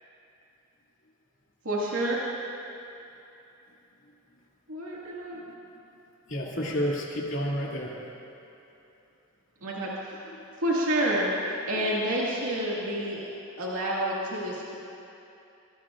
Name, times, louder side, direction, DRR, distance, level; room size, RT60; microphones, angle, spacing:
voice 1, 1.6-2.2 4.7-5.4 9.6-10.3 10.6-13.3 13.6-14.7, right 1 dB, 85° right, -5 dB, 2.1 m, -29 dB
voice 2, 5.3-6.0 6.3-7.9 10.3-10.4 11.7-12.0, equal, 60° left, -5 dB, 2.6 m, -32 dB
23.0 x 19.5 x 2.5 m, 2.8 s
head